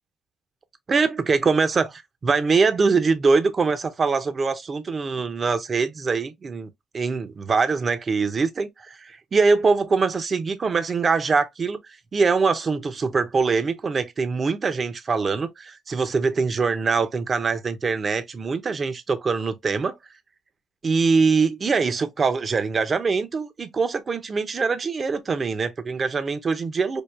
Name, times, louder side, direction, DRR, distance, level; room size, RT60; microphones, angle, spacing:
voice 1, 0.9-11.8 12.1-19.9 20.8-27.0, right 4 dB, 40° right, 0.6 m, -23 dB
4.5 x 2.4 x 2.3 m
cardioid pair, 90°, 0 cm